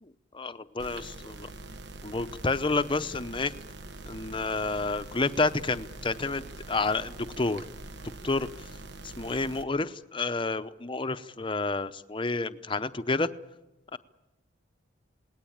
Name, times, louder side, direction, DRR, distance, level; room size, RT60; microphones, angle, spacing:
voice 1, 0.0-1.5 2.0-3.5 4.1-7.6 8.2-8.7 9.0-13.3 13.9-14.0, left 3 dB, 25° left, 12 dB, 0.8 m, -30 dB
sound 1, 0.8-9.6, right 2 dB, 60° right, 1.1 m, -44 dB
27.5 x 19.0 x 8.7 m, 1.0 s
head